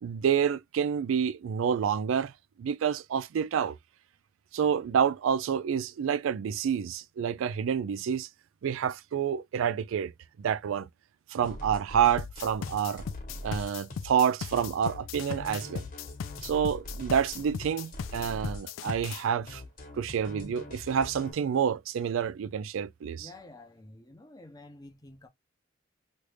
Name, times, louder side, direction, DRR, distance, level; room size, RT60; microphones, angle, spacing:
voice 1, 0.0-2.3 2.6-3.8 4.5-8.3 8.6-10.1 10.4-10.9 11.3-13.0 13.4-15.8 16.4-19.6 20.0-23.3, right 8 dB, 75° right, 0.3 m, -28 dB
sound 1, 11.4-21.3, equal, 45° left, 1.4 m, -43 dB
sound 2, 12.2-19.2, left 7 dB, 75° left, 0.3 m, -38 dB
voice 2, 23.2-25.3, left 2 dB, 20° left, 0.7 m, -50 dB
3.2 x 2.5 x 3.2 m
head